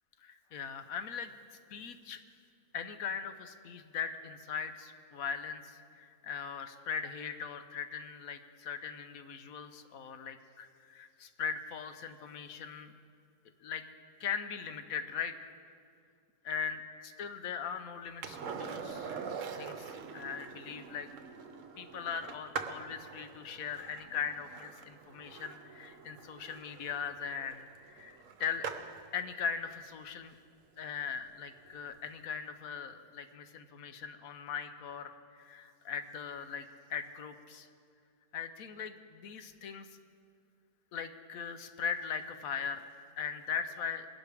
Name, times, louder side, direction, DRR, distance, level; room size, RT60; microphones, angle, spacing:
voice 1, 0.2-2.2 2.7-12.9 13.6-13.8 14.2-15.5 16.4-21.1 21.8-28.7 29.1-30.3 30.8-35.1 35.4-37.7 38.3-39.9 40.9-42.9 43.2-44.1, left 7 dB, 65° left, 9 dB, 1.2 m, -40 dB
Skateboard, 18.2-29.1 31.7-31.8, right 6 dB, 60° right, 1.1 m, -44 dB
23.0 x 11.5 x 3.5 m, 2.3 s
omnidirectional pair, 1.7 m